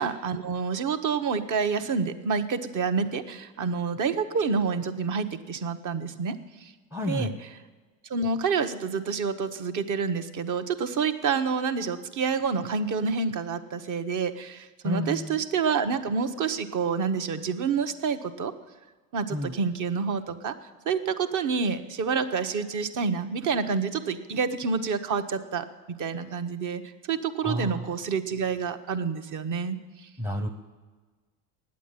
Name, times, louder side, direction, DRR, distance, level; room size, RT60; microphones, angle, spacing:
voice 1, 0.0-6.7 7.1-7.3 8.1-18.5 19.1-20.5 20.8-26.8 27.1-30.1, right 5 dB, 40° right, 9 dB, 1.0 m, -28 dB
voice 2, 6.9-7.3 14.8-15.4 19.3-19.6 27.4-28.0 30.2-30.5, left 1 dB, 5° right, 2 dB, 0.7 m, -30 dB
9.5 x 8.3 x 9.0 m, 1.3 s
supercardioid pair, 100°, 46 cm